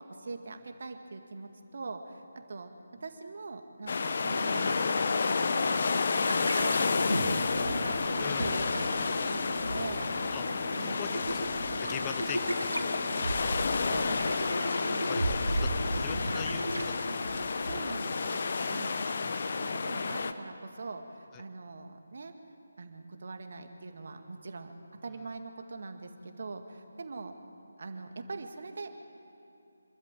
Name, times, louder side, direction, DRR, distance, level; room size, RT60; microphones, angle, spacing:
voice 1, 0.0-4.9 5.2-10.1 10.8-11.1 13.9-14.4 14.8-15.1 17.6-19.0 19.5-22.4 22.8-24.7 25.0-27.4 27.8-29.0, right 3 dB, 50° right, 6 dB, 1.9 m, -42 dB
sound 1, 3.9-20.3, left 4 dB, 45° left, 1.0 m, -30 dB
sound 2, 6.3-17.8, right 1 dB, 85° right, 3.2 m, -36 dB
Car / Idling, 6.7-13.3, right 5 dB, 10° right, 1.3 m, -47 dB
voice 2, 8.2-8.5 10.3-10.4 10.7-13.6 15.1-17.1 19.1-19.4 21.3-21.4, left 11 dB, 15° left, 10 dB, 0.5 m, -43 dB
26.0 x 12.5 x 8.9 m, 2.7 s
figure-of-eight pair, 155°, 0 cm